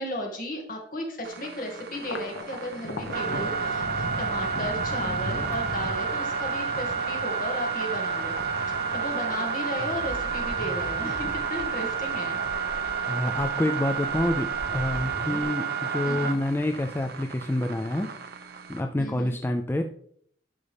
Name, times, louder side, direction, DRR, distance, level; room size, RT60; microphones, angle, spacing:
voice 1, 0.0-8.4 8.7-12.4 16.0-16.4 19.0-19.4, left 1 dB, 50° left, 1 dB, 2.0 m, -35 dB
sound 1, 1.2-18.8, right 6 dB, 60° right, 0.8 m, -31 dB
Thunder, 1.9-14.6 15.0-15.8 16.1-17.0, left 1 dB, 75° left, 1.1 m, -40 dB
sound 2, 9.8-11.7 12.0-12.1 12.4-12.9 13.3-15.4, equal, 25° left, 2.1 m, -39 dB
voice 2, 13.1-18.1 18.7-19.8, left 1 dB, 10° left, 5 dB, 0.4 m, -27 dB
11.0 x 5.4 x 3.4 m, 0.64 s
head